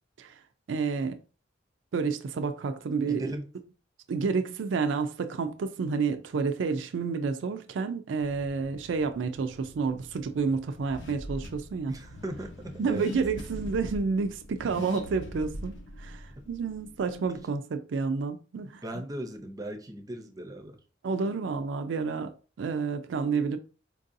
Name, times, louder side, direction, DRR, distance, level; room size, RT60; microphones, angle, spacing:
voice 1, 0.7-1.2 1.9-3.3 4.1-12.0 12.8-18.8 21.0-22.3 22.6-23.6, right 5 dB, 80° right, 0.4 m, -30 dB
voice 2, 3.1-3.5 11.9-13.1 18.8-20.8, right 1 dB, 20° right, 0.5 m, -37 dB
Car / Accelerating revving vroom, 8.2-17.4, left 1 dB, 85° left, 0.8 m, -43 dB
4.5 x 2.6 x 2.6 m
head